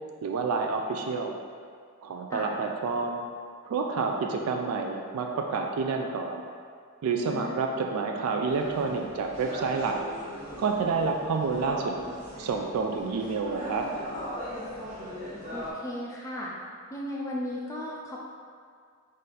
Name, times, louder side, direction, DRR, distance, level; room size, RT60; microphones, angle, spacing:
voice 1, 0.2-1.3 2.0-3.2 3.6-6.4 7.0-10.0 10.6-12.0 12.4-13.9, right 4 dB, 80° right, 2 dB, 0.3 m, -29 dB
voice 2, 7.3-7.6 15.5-16.5 16.9-18.2, left 1 dB, 15° left, -4 dB, 0.3 m, -35 dB
sound 1, 8.5-15.7, equal, 35° right, 1.0 m, -39 dB
4.1 x 2.5 x 3.9 m, 2.1 s
head